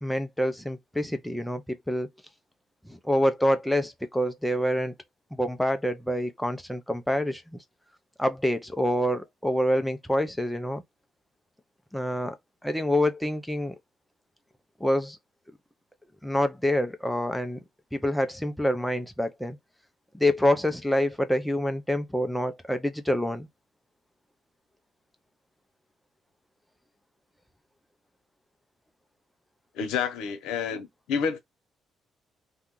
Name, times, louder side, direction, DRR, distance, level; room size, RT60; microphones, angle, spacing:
voice 1, 0.0-2.1 2.8-4.9 5.3-7.6 8.2-10.8 11.9-12.4 12.6-13.7 14.8-15.2 16.2-17.6 17.9-19.6 20.1-23.5, left 1 dB, 5° left, 0.7 m, -26 dB
voice 2, 29.8-31.4, left 6 dB, 90° left, 0.9 m, -29 dB
2.7 x 2.5 x 3.7 m
cardioid pair, 90°, 0 cm